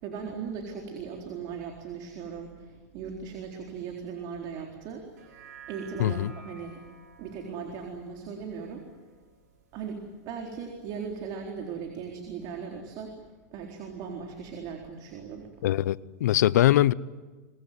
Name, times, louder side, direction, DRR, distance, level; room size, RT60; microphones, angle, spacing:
voice 1, 0.0-5.1 5.7-6.8 7.2-8.9 9.7-13.1 13.5-15.5, right 6 dB, 50° right, 4.2 m, -38 dB
sound 1, 5.1-9.6 10.0-10.1, right 5 dB, 85° right, 5.6 m, -52 dB
voice 2, 6.0-6.3 15.6-16.9, left 13 dB, 80° left, 0.7 m, -22 dB
25.0 x 21.0 x 9.5 m
supercardioid pair, 125°, 9 cm